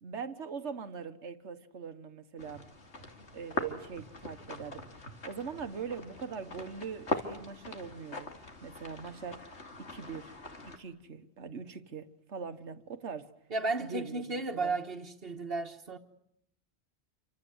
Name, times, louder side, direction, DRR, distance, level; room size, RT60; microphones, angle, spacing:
voice 1, 0.0-2.6 3.3-4.8 5.2-8.3 8.6-9.6 9.9-10.3 10.6-13.3 13.8-14.8, right 6 dB, 85° right, 1.6 m, -42 dB
sound 1, 2.4-10.8, left 2 dB, 80° left, 2.8 m, -41 dB
voice 2, 13.5-16.0, right 3 dB, 55° right, 1.6 m, -34 dB
28.5 x 25.0 x 7.9 m
omnidirectional pair, 1.1 m